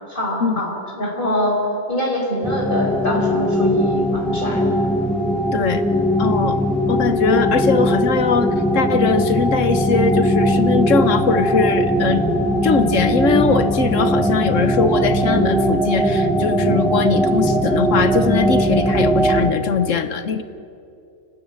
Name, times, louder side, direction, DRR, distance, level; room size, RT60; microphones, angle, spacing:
voice 1, 0.1-1.6 1.9-4.6, equal, 35° left, -2 dB, 5.3 m, -24 dB
sound 1, 2.4-19.5, equal, ahead, 1.6 m, -19 dB
voice 2, 5.5-5.8 6.2-6.6 6.9-12.2 12.6-20.4, left 5 dB, 55° left, 10 dB, 1.4 m, -21 dB
30.0 x 12.5 x 9.0 m, 2.6 s
omnidirectional pair, 1.6 m